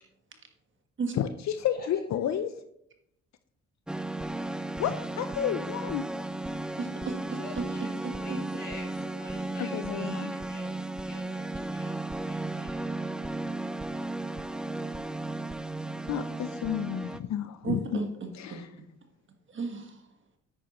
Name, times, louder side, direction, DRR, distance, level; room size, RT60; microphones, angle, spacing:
voice 1, 1.2-2.5 4.8-6.0 9.6-10.3 16.1-18.0 18.4-18.7, left 10 dB, 65° left, 10 dB, 0.6 m, -31 dB
voice 2, 1.7-2.4 7.4-12.9, left 2 dB, 30° left, -1 dB, 2.7 m, -48 dB
sound 1, 3.9-17.2, right 2 dB, 5° right, 0.3 m, -35 dB
voice 3, 6.8-7.1 8.0-8.4 17.6-18.6 19.5-20.0, right 4 dB, 40° right, 4 dB, 1.5 m, -34 dB
9.9 x 8.7 x 3.0 m, 0.78 s
cardioid pair, 90°, 30 cm